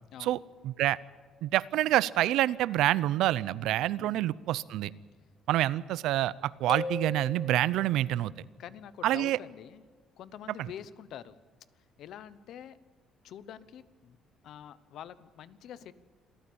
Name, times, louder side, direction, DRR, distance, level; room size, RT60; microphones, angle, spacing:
voice 1, 0.6-1.0 1.4-4.9 5.5-8.3 9.0-9.4, right 14 dB, 80° right, 19 dB, 0.6 m, -27 dB
voice 2, 4.0-4.3 8.6-9.8 10.2-11.4 12.0-12.8 13.2-14.2 14.4-15.9, left 9 dB, 60° left, 16 dB, 0.9 m, -46 dB
sound 1, 6.7-8.2, left 3 dB, 25° left, 0.9 m, -38 dB
26.5 x 14.0 x 8.7 m, 1.4 s
cardioid pair, 160°, 0 cm